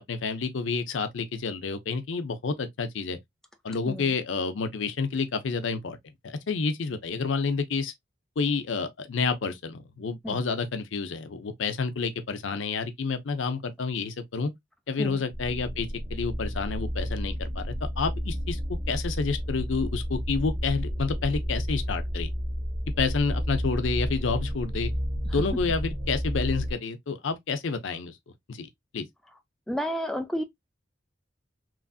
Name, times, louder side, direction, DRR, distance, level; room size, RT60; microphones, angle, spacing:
voice 1, 0.0-3.2 3.6-6.0 6.2-7.9 8.4-14.5 14.9-18.6 18.9-22.3 23.0-24.9 25.3-28.1 28.5-28.7 28.9-29.1, left 4 dB, 90° left, 0.6 m, -29 dB
sound 1, 15.3-26.7, equal, 20° right, 0.8 m, -31 dB
voice 2, 29.7-30.4, equal, ahead, 0.3 m, -31 dB
3.1 x 2.6 x 2.3 m
head